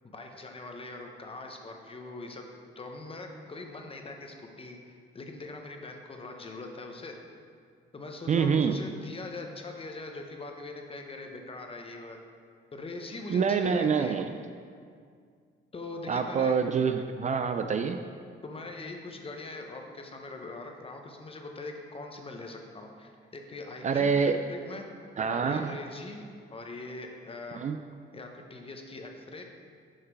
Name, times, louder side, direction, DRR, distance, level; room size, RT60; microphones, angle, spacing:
voice 1, 0.0-2.5 2.8-7.2 7.9-12.2 12.7-14.2 15.7-16.6 18.4-24.9 25.3-26.3 26.5-27.6 28.1-29.4, left 2 dB, 30° left, 3 dB, 0.9 m, -42 dB
voice 2, 8.3-8.8 13.3-14.4 16.1-18.0 23.8-24.4 25.2-25.8 27.5-27.8, right 6 dB, 40° right, 7 dB, 0.4 m, -26 dB
6.4 x 5.8 x 4.6 m, 2.2 s
cardioid pair, 90°, 20 cm